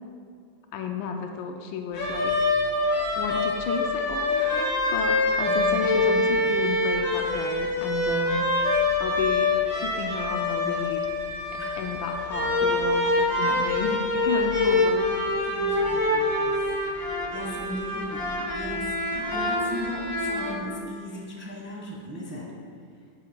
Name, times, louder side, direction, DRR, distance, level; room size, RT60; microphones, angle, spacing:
voice 1, 0.7-2.3 3.2-8.5 9.0-11.1 11.8-15.4, left 6 dB, 80° left, 3 dB, 1.3 m, -33 dB
sound 1, 2.0-20.5, left 2 dB, 50° left, 2.2 m, -25 dB
voice 2, 5.5-6.6 11.6-11.8 12.6-12.7 15.4-16.7 17.3-18.3 18.5-22.5, equal, 10° right, -3 dB, 1.0 m, -37 dB
14.5 x 7.6 x 2.3 m, 2.1 s
omnidirectional pair, 2.2 m